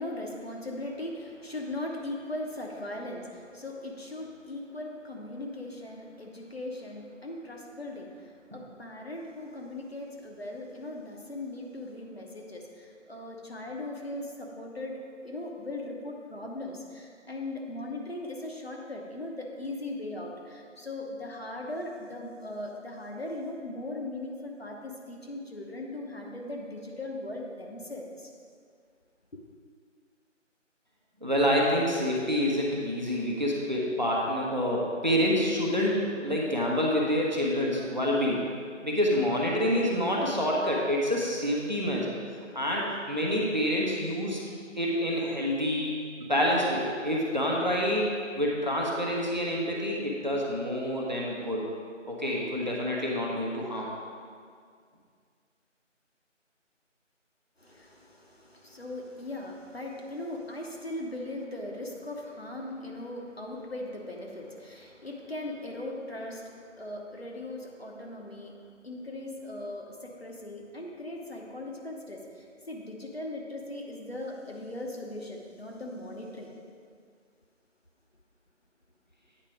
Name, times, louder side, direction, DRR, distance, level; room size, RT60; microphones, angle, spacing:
voice 1, 0.0-28.3 57.6-76.6, left 1 dB, 55° left, 0 dB, 1.0 m, -39 dB
voice 2, 31.2-38.4 38.8-42.1 42.5-44.4 44.8-45.9 46.3-48.1 48.4-51.6 52.1-53.9, equal, 35° right, -3 dB, 1.0 m, -27 dB
8.8 x 4.5 x 4.9 m, 2.1 s
figure-of-eight pair, 180°, 38 cm